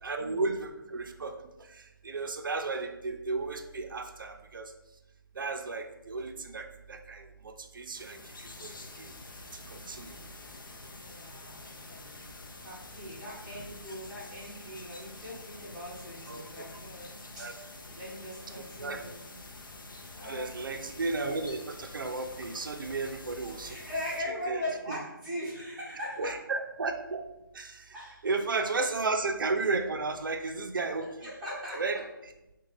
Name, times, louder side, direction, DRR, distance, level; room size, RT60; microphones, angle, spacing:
voice 1, 0.0-1.4 2.0-4.7 5.4-9.1 9.7-10.2 16.3-16.7 17.4-17.5 18.6-19.0 20.2-23.7 24.5-24.6 24.9-25.0 26.2-27.3 27.5-27.8 28.2-31.3 31.8-32.0, right 3 dB, 65° right, 6 dB, 0.4 m, -34 dB
sound 1, 7.9-24.2, left 2 dB, 65° left, 0.5 m, -47 dB
voice 2, 11.0-12.2 12.6-17.5 18.0-19.2 20.1-20.5 23.6-26.3 27.9-28.3 28.6-28.8 31.0-31.8, left 1 dB, 5° right, -12 dB, 0.8 m, -40 dB
3.6 x 2.2 x 3.2 m, 0.94 s
figure-of-eight pair, 165°, 12 cm